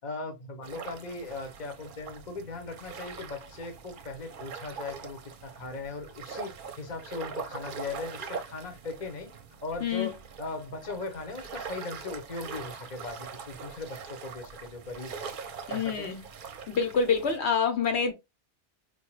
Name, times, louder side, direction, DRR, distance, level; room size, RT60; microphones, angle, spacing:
voice 1, 0.0-9.3 9.6-15.3 15.7-16.1, left 3 dB, 40° left, 0.9 m, -39 dB
sound 1, 0.6-17.4, right 6 dB, 55° right, 0.7 m, -42 dB
voice 2, 9.8-10.1 15.7-16.2 16.7-18.1, left 6 dB, 70° left, 1.1 m, -27 dB
4.5 x 2.2 x 3.0 m
omnidirectional pair, 1.2 m